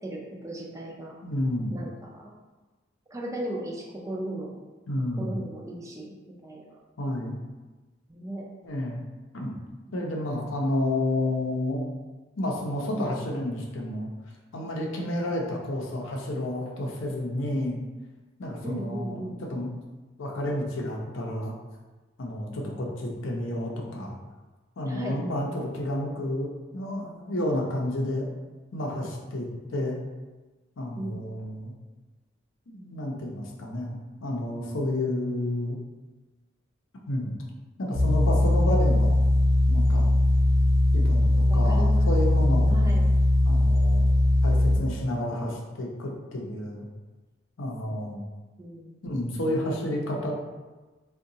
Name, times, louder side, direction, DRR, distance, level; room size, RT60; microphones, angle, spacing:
voice 1, 0.0-1.1 1.7-2.3 3.1-4.6 5.2-6.7 8.1-8.4 18.6-19.4 24.9-25.2 31.0-31.3 41.2-42.1 42.7-43.1 48.6-49.0, right 1 dB, 15° right, -2 dB, 0.4 m, -37 dB
voice 2, 1.2-1.8 4.9-5.3 7.0-7.4 8.6-9.0 9.3-9.5 9.9-11.9 12.4-14.1 14.5-17.8 18.4-19.7 20.2-21.5 22.2-24.2 24.8-28.3 28.7-29.5 29.7-30.0 30.8-31.7 32.7-35.8 37.1-37.3 37.8-39.2 39.7-40.1 40.9-42.8 43.5-44.0 44.4-46.9 47.6-48.2 49.0-50.3, left 1 dB, 75° left, -1 dB, 0.6 m, -30 dB
sound 1, 37.9-44.8, left 1 dB, 70° right, 0.7 m, -20 dB
3.7 x 2.2 x 2.7 m, 1.2 s
head